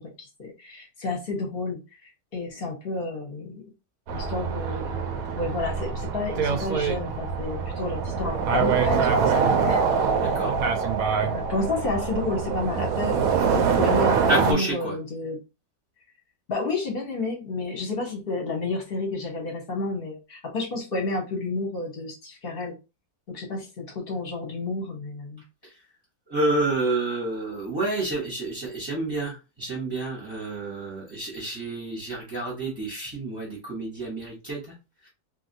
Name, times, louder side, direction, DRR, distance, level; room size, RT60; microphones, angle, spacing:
voice 1, 0.0-1.8 2.3-3.6 4.1-9.9 11.2-15.4 16.5-22.7 23.3-25.4, left 3 dB, 40° left, 1 dB, 0.9 m, -31 dB
sound 1, 4.1-14.5, right 6 dB, 70° right, 0.9 m, -24 dB
voice 2, 10.2-10.5 14.3-14.9 26.3-34.6 35.0-35.1, right 2 dB, 15° right, -4 dB, 0.8 m, -29 dB
2.9 x 2.6 x 2.6 m, 0.28 s
omnidirectional pair, 1.9 m